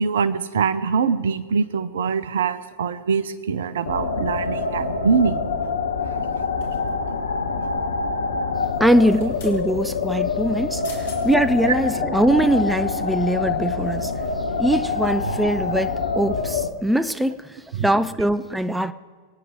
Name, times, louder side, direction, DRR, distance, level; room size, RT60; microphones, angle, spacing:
voice 1, 0.0-5.4 11.6-11.7 12.1-12.2 15.3-15.4 17.8-17.9, right 5 dB, 60° right, 0.8 m, -23 dB
sound 1, 3.9-16.7, left 4 dB, 75° left, 1.2 m, -25 dB
sound 2, 6.6-7.2 8.9-9.6 10.6-10.7 10.8-11.2 11.8-11.9, left 5 dB, 60° left, 4.1 m, -43 dB
voice 2, 8.8-14.1 14.6-18.9, right 1 dB, 5° right, 0.6 m, -22 dB
25.0 x 9.4 x 5.1 m
figure-of-eight pair, 90°, 0 cm